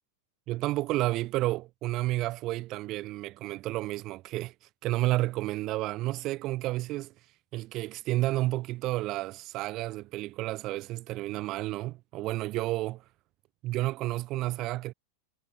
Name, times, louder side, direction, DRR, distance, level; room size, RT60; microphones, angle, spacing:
voice 1, 0.5-4.5 4.8-7.1 7.5-13.0 13.6-14.9, right 17 dB, 35° right, 3.5 m, -31 dB
figure-of-eight pair, 90°, 0 cm